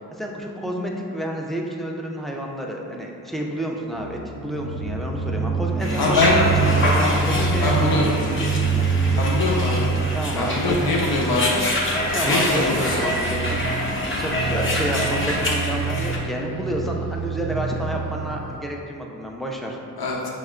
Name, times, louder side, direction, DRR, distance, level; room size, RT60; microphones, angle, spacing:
voice 1, 0.2-6.3 6.9-7.7 8.0-8.1 9.0-9.2 10.1-10.8 12.1-13.6 14.0-19.8, equal, ahead, -1 dB, 0.4 m, -30 dB
sound 1, 3.9-18.6, right 4 dB, 55° right, 0.5 m, -26 dB
sound 2, 5.8-16.2, left 1 dB, 35° left, 0.7 m, -26 dB
voice 2, 6.0-6.6 7.6-8.1 9.1-9.9 10.4-11.6 12.2-12.8 20.0-20.3, left 2 dB, 75° left, -3 dB, 0.7 m, -22 dB
5.4 x 2.1 x 2.4 m, 2.5 s
cardioid pair, 55°, 37 cm